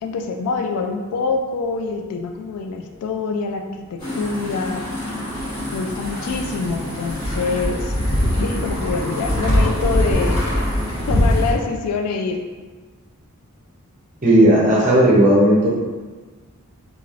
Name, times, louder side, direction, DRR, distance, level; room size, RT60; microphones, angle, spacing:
voice 1, 0.0-4.8 5.7-8.0 8.4-10.4 11.1-12.4, left 4 dB, 80° left, 4 dB, 0.3 m, -25 dB
sound 1, 4.0-11.5, equal, 20° left, 1.3 m, -22 dB
voice 2, 14.2-15.7, right 1 dB, 35° right, -5 dB, 0.7 m, -14 dB
3.1 x 2.4 x 2.4 m, 1.3 s
head